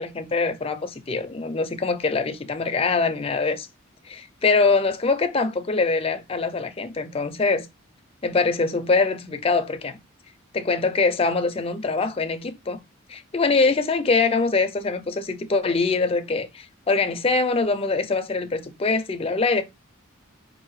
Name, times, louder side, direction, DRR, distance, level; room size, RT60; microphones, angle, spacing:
voice 1, 0.0-3.7 4.0-7.7 8.2-10.0 10.5-12.8 13.1-19.6, left 4 dB, 25° left, 0.4 m, -23 dB
4.6 x 2.5 x 3.0 m
head